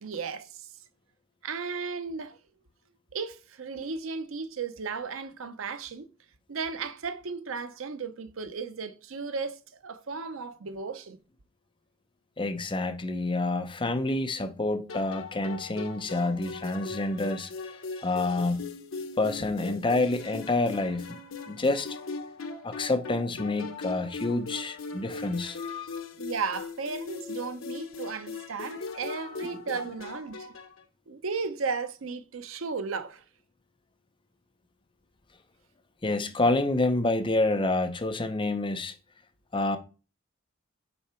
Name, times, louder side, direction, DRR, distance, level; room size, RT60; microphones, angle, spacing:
voice 1, 0.0-0.7 1.4-2.4 3.1-6.1 6.5-11.2 26.1-30.5 31.1-33.2, right 5 dB, 80° right, 0.7 m, -35 dB
voice 2, 12.4-17.5 18.0-18.6 19.2-21.1 21.5-22.0 22.6-26.0 29.1-29.2 36.0-38.9 39.5-39.8, left 2 dB, 25° left, 0.7 m, -28 dB
sound 1, 14.9-30.8, left 4 dB, 75° left, 0.9 m, -40 dB
7.0 x 4.7 x 4.4 m
head